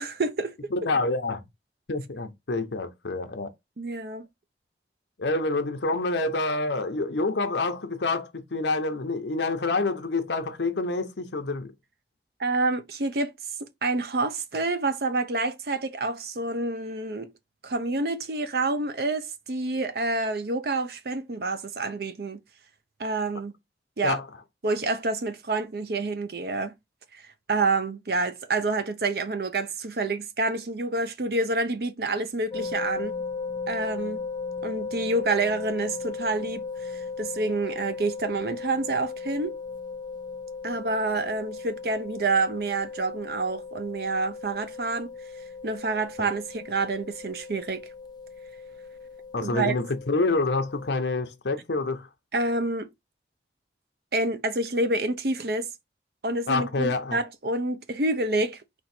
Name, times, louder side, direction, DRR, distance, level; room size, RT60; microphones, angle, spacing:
voice 1, 0.0-0.5 3.8-4.3 12.4-13.3 13.8-17.3 17.6-22.4 23.0-23.5 24.0-24.2 24.6-26.8 27.5-33.2 33.7-34.3 34.6-39.5 40.6-45.1 45.6-47.8 49.4-49.7 52.3-52.9 54.1-55.7 56.2-58.6, right 3 dB, 55° right, 0.6 m, -28 dB
voice 2, 0.7-1.4 1.9-3.5 5.2-11.7 24.0-24.3 49.3-52.1 56.5-57.2, left 3 dB, 75° left, 0.8 m, -27 dB
sound 1, 32.5-50.9, left 4 dB, 25° left, 0.3 m, -37 dB
4.4 x 2.6 x 4.2 m
head